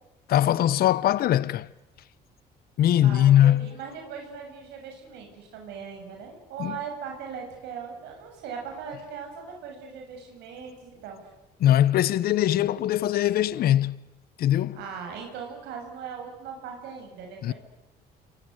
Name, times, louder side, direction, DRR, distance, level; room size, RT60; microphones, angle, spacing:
voice 1, 0.3-1.7 2.8-3.6 6.6-6.8 11.6-13.9 14.4-14.8 17.4-17.5, left 12 dB, 65° left, 1.0 m, -21 dB
voice 2, 3.0-11.2 14.7-17.5, right 6 dB, 85° right, 7.4 m, -39 dB
28.0 x 24.0 x 8.1 m
cardioid pair, 110°, 17 cm